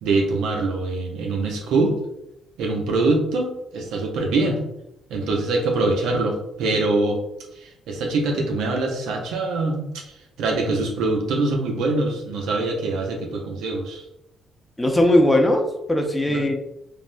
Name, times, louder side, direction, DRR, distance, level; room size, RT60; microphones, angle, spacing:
voice 1, 0.0-1.9 2.6-4.6 5.1-7.2 7.6-9.9 10.4-14.0 16.3-16.4, right 3 dB, 85° right, 1 dB, 0.5 m, -23 dB
voice 2, 14.8-16.5, left 1 dB, 10° left, 2 dB, 0.5 m, -19 dB
3.4 x 2.0 x 2.5 m, 0.84 s
cardioid pair, 90°, 0 cm